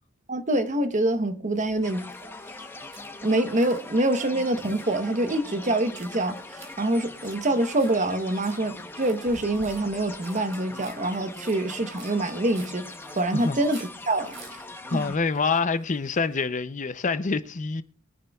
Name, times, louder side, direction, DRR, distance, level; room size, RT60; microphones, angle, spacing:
voice 1, 0.3-2.0 3.2-12.9 13.1-14.3 14.9-15.0, right 1 dB, 35° right, 1.0 m, -25 dB
sound 1, 1.6-16.4, right 4 dB, 60° right, 3.3 m, -52 dB
sound 2, 1.8-15.2, left 2 dB, 10° left, 1.0 m, -41 dB
voice 2, 14.9-17.8, left 4 dB, 35° left, 0.6 m, -26 dB
22.5 x 10.0 x 2.4 m
head